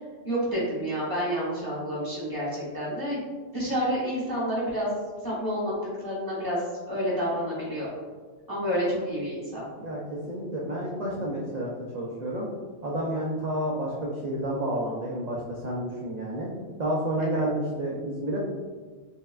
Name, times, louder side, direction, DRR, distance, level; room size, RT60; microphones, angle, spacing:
voice 1, 0.2-3.2 3.5-4.9 5.2-5.7 6.0-6.6 6.9-7.9 8.5-9.6 17.2-17.4, equal, 15° right, -8 dB, 1.2 m, -29 dB
voice 2, 9.8-12.5 12.8-16.5 16.8-18.4, right 1 dB, 50° right, -5 dB, 0.5 m, -30 dB
5.3 x 2.2 x 2.3 m, 1.4 s
omnidirectional pair, 1.3 m